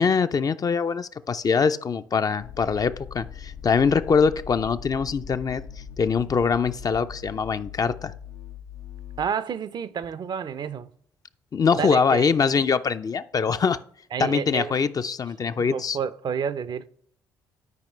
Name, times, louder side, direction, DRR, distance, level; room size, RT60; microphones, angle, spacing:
voice 1, 0.0-5.6 6.0-8.1 11.5-13.8 14.2-16.0, left 5 dB, 35° left, 0.5 m, -23 dB
sound 1, 2.4-9.3, left 6 dB, 80° left, 0.7 m, -40 dB
voice 2, 9.2-10.9 11.8-12.3 14.1-14.8 15.6-16.9, right 7 dB, 45° right, 0.5 m, -30 dB
12.0 x 4.9 x 3.2 m
hypercardioid pair, 50°, 10 cm